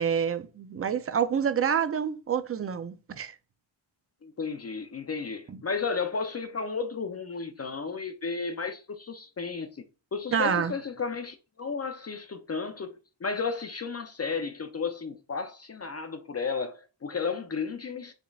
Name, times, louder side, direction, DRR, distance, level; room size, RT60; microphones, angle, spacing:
voice 1, 0.0-3.4 5.5-5.6 10.3-10.7, right 7 dB, 30° right, 0.4 m, -27 dB
voice 2, 4.2-9.8 10.1-13.0 13.2-18.1, left 5 dB, 35° left, 0.4 m, -33 dB
5.1 x 3.6 x 2.3 m
wide cardioid pair, 105°, 48 cm